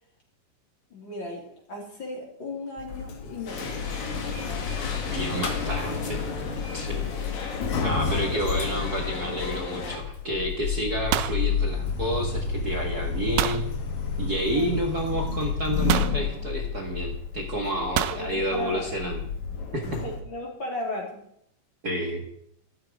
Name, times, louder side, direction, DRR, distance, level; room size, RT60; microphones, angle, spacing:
voice 1, 0.9-3.9 8.7-8.8 14.5-15.4 17.7-19.0 20.0-21.2, left 2 dB, 35° left, -2 dB, 4.4 m, -36 dB
Sliding door, 2.8-20.2, left 6 dB, 60° left, 2.9 m, -31 dB
sound 1, 3.5-10.0, left 4 dB, 85° left, 4.0 m, -36 dB
voice 2, 5.1-6.2 6.7-7.1 7.8-13.7 14.2-19.3 19.7-20.0 21.8-22.2, right 1 dB, 35° right, 3 dB, 1.6 m, -30 dB
sound 2, 10.1-10.5 10.8-12.3 13.4-13.7 14.8-14.9 15.9-16.2 18.0-18.3, right 12 dB, 85° right, 2.4 m, -27 dB
14.0 x 13.5 x 4.8 m, 0.72 s
omnidirectional pair, 3.9 m